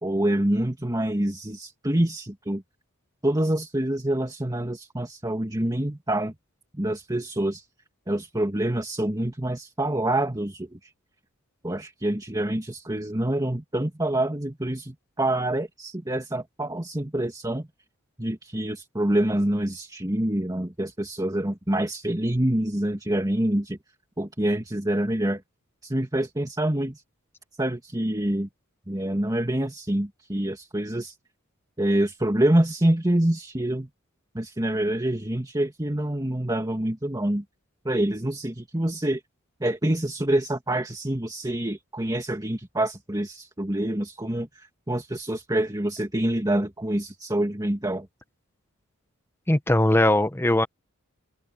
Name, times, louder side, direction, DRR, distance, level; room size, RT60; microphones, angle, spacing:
voice 1, 0.0-2.6 3.2-6.3 6.7-7.6 8.1-10.8 11.6-17.7 18.2-23.8 24.2-25.4 25.8-27.0 27.6-28.5 28.9-31.2 31.8-33.9 34.3-37.4 37.8-39.2 39.6-48.1, right 1 dB, 20° right, 2.3 m, -26 dB
voice 2, 49.5-50.7, left 1 dB, 10° left, 0.9 m, -20 dB
open air
head